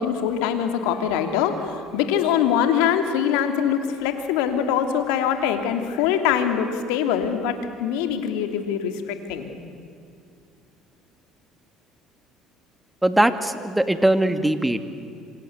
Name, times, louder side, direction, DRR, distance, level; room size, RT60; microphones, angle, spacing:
voice 1, 0.0-7.5 7.8-9.5, left 8 dB, 80° left, 6 dB, 2.9 m, -23 dB
voice 2, 13.0-14.8, right 1 dB, 10° right, 9 dB, 2.3 m, -20 dB
27.0 x 25.5 x 8.1 m, 2.4 s
hypercardioid pair, 70°, 0 cm